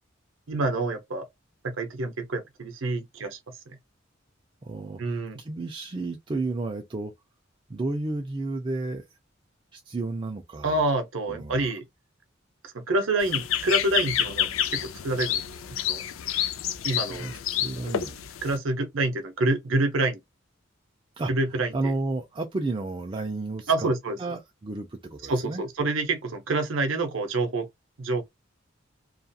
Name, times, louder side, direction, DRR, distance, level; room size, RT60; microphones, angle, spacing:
voice 1, 0.5-1.3 1.6-3.4 5.0-5.4 10.6-11.8 12.7-16.0 16.8-17.3 18.4-20.2 21.3-21.9 23.7-24.2 25.3-27.7 28.0-28.2, right 2 dB, 75° right, 0.6 m, -27 dB
voice 2, 4.6-7.1 7.7-9.1 9.7-10.8 11.3-11.7 17.2-18.2 21.2-23.9 24.2-25.6, right 2 dB, 25° right, 0.4 m, -32 dB
sound 1, 13.2-18.6, left 10 dB, 85° left, 0.4 m, -29 dB
2.7 x 2.4 x 2.2 m
head